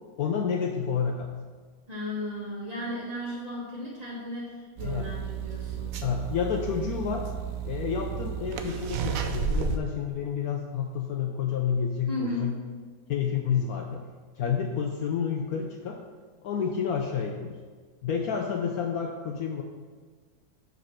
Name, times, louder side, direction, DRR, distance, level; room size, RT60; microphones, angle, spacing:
voice 1, 0.2-1.3 4.8-5.1 6.0-7.3 7.7-12.5 13.1-14.0 14.4-16.0 16.4-17.6 18.0-19.6, left 7 dB, 70° left, 2 dB, 1.0 m, -29 dB
voice 2, 1.9-5.9 12.1-12.6, left 1 dB, 25° right, -6 dB, 1.7 m, -35 dB
sound 1, 4.8-9.8, right 7 dB, 70° right, 0.9 m, -32 dB
5.4 x 5.1 x 6.1 m, 1.5 s
omnidirectional pair, 1.9 m